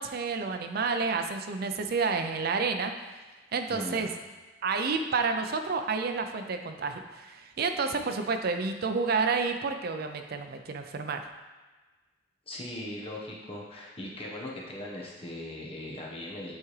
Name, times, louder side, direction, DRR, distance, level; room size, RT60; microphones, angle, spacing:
voice 1, 0.0-2.9 3.5-4.1 4.6-11.2, right 4 dB, 55° right, 6 dB, 0.5 m, -30 dB
voice 2, 3.7-4.1 12.5-16.5, left 1 dB, 30° left, -3 dB, 1.1 m, -39 dB
8.5 x 3.6 x 3.2 m, 1.3 s
head